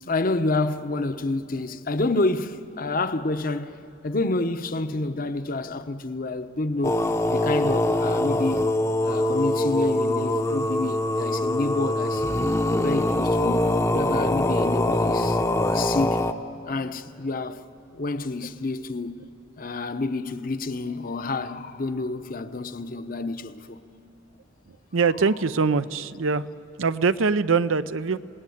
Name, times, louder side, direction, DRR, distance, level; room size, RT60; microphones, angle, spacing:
voice 1, 0.0-3.8 4.0-7.0 7.3-8.6 9.0-12.3 12.6-13.7 13.9-15.4 15.7-16.2 16.7-17.6 17.9-19.2 19.6-23.8, left 2 dB, 45° left, 0.9 m, -28 dB
sound 1, 6.8-16.3, left 1 dB, 15° left, 0.7 m, -23 dB
voice 2, 24.9-26.5 26.8-28.2, right 5 dB, 85° right, 0.6 m, -23 dB
27.5 x 19.0 x 9.4 m
head